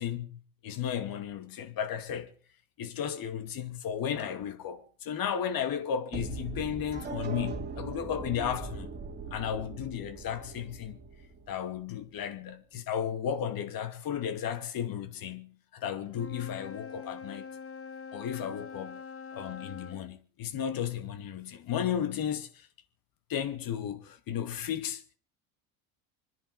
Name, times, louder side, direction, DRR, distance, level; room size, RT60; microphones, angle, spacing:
voice 1, 0.0-2.3 2.8-9.0 9.3-11.0 11.5-17.5 18.1-19.0 19.3-22.7 23.3-25.2, left 9 dB, 50° left, 2.6 m, -34 dB
sound 1, 6.1-12.1, right 5 dB, 25° right, 3.2 m, -40 dB
Wind instrument woodwind instrument, 16.1-20.0, left 5 dB, 30° left, 0.9 m, -44 dB
25.5 x 10.5 x 5.0 m
supercardioid pair, 90°, 43 cm